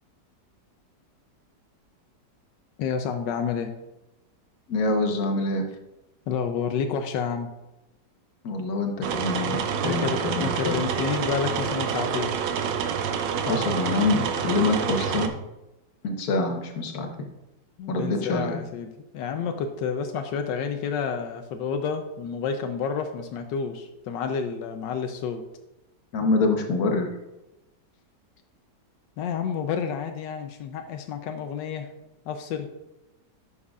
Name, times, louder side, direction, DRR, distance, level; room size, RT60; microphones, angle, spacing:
voice 1, 2.8-3.7 6.3-7.5 9.5-12.3 17.8-25.4 29.2-31.9 32.3-32.7, left 6 dB, 90° left, 6 dB, 1.3 m, -30 dB
voice 2, 4.7-5.6 8.4-10.7 13.5-15.3 16.0-17.1 17.9-18.6 26.1-27.1, left 3 dB, 60° left, 3 dB, 1.5 m, -25 dB
sound 1, 9.0-15.3, right 7 dB, 90° right, 1.4 m, -27 dB
11.0 x 6.4 x 2.4 m, 0.94 s
omnidirectional pair, 1.9 m